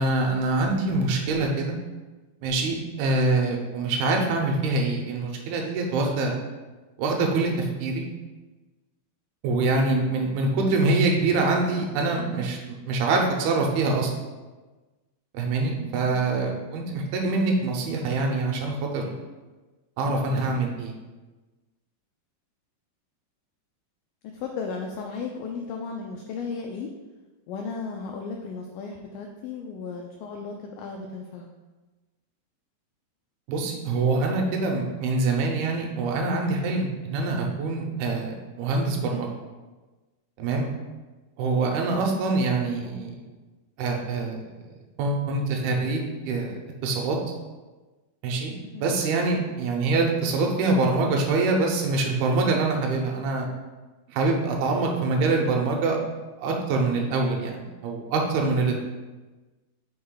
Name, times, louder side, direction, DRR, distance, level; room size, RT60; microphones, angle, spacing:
voice 1, 0.0-1.8 2.4-6.3 7.0-8.0 9.4-12.6 12.9-14.1 15.3-19.1 20.0-20.9 33.5-39.3 40.4-40.7 41.4-43.1 43.8-44.5 45.0-47.2 48.2-48.5 48.8-53.5 54.1-56.0 56.4-58.8, right 3 dB, 85° right, 1 dB, 2.8 m, -25 dB
voice 2, 15.8-16.2 24.3-26.9 27.5-31.5 48.6-49.0, left 5 dB, 85° left, 2 dB, 1.9 m, -35 dB
6.5 x 4.4 x 3.8 m, 1.2 s
omnidirectional pair, 4.4 m